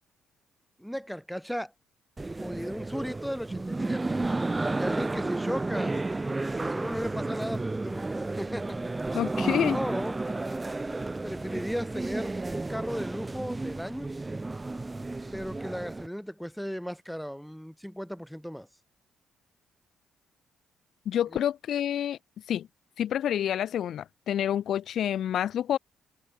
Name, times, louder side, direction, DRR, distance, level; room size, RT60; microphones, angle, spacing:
voice 1, 0.8-1.7 2.4-4.2 4.7-6.0 6.5-8.8 9.7-10.2 11.2-14.1 15.3-18.7 21.3-21.4, equal, ahead, 4.8 m, -36 dB
sound 1, 2.2-16.1, right 2 dB, 20° right, 3.9 m, -32 dB
voice 2, 9.1-9.8 21.1-22.2 22.5-22.7 23.0-25.8, left 10 dB, 70° left, 0.9 m, -28 dB
cardioid pair, 90°, 0 cm